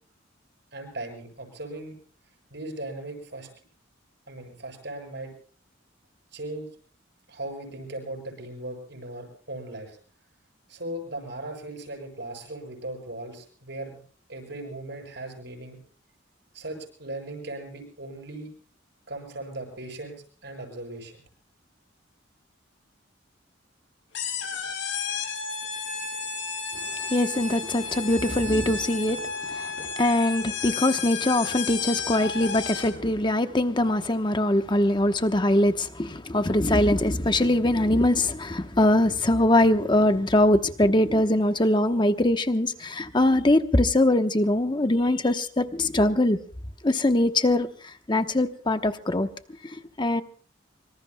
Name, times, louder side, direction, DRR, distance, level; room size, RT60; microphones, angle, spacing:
voice 1, 0.7-2.0 2.5-3.5 4.3-5.3 6.3-6.7 7.3-10.0 10.7-14.0 14.3-15.8 16.5-18.5 19.1-21.2, right 2 dB, 60° right, 7.5 m, -38 dB
sound 1, 24.1-33.1, left 5 dB, 75° left, 6.5 m, -32 dB
voice 2, 27.1-46.4 46.8-47.7 48.1-49.3 50.0-50.2, left 1 dB, 25° left, 1.0 m, -22 dB
25.5 x 25.0 x 2.2 m
head